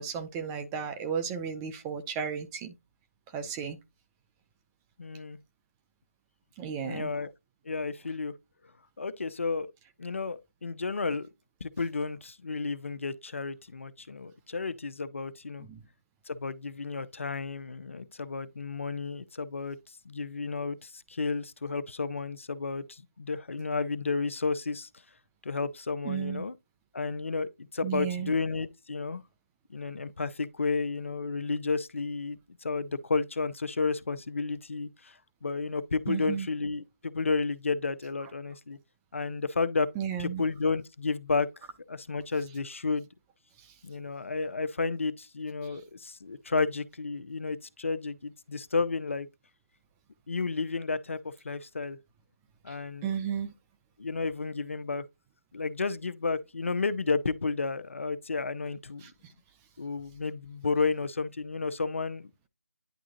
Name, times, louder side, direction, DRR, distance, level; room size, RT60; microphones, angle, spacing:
voice 1, 0.0-2.7 3.3-3.8 6.6-7.1 15.6-15.8 26.0-26.5 27.8-28.3 36.1-36.5 40.0-40.4 53.0-53.5 59.0-59.3, right 7 dB, 10° right, 0.5 m, -34 dB
voice 2, 5.0-5.4 6.8-7.3 7.6-8.3 9.0-9.7 10.0-11.3 11.6-15.7 16.3-19.8 20.0-24.9 25.4-26.5 26.9-29.2 29.7-38.8 39.1-39.9 40.2-41.5 41.9-43.1 43.8-49.3 50.3-52.0 52.6-53.0 54.0-55.0 55.5-59.0 59.8-62.3, left 4 dB, 60° left, 0.7 m, -32 dB
10.5 x 3.6 x 2.8 m
figure-of-eight pair, 160°, 8 cm